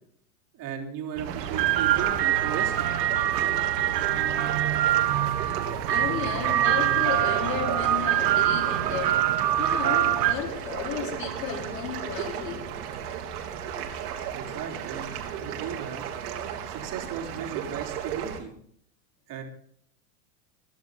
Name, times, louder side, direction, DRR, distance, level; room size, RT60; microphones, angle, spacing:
voice 1, 0.5-2.9 14.3-16.1 16.6-18.5 19.3-19.4, right 8 dB, 40° right, 3.8 m, -36 dB
sound 1, 1.2-18.4, right 8 dB, 65° right, 3.2 m, -35 dB
sound 2, 1.2-10.3, right 12 dB, 80° right, 1.4 m, -24 dB
voice 2, 5.9-12.7, left 8 dB, 75° left, 4.0 m, -34 dB
20.5 x 11.0 x 4.0 m
hypercardioid pair, 110°, 49 cm